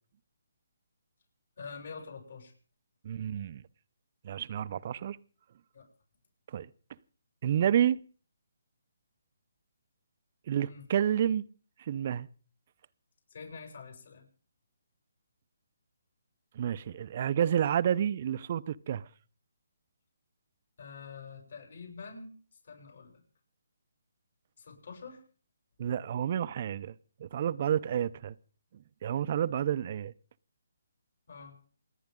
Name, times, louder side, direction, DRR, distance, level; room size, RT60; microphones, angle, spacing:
voice 1, 1.6-2.5 5.7-5.9 10.6-10.9 13.3-14.3 20.8-22.3 22.6-23.2 24.6-25.2 31.3-31.6, left 5 dB, 60° left, 7.4 m, -46 dB
voice 2, 3.0-3.6 4.2-5.2 6.5-6.7 7.4-8.0 10.5-11.5 11.9-12.3 16.6-19.0 25.8-26.9 27.2-28.3 29.0-30.1, right 9 dB, 40° right, 0.6 m, -29 dB
28.0 x 10.5 x 3.7 m
hypercardioid pair, 155°, 0 cm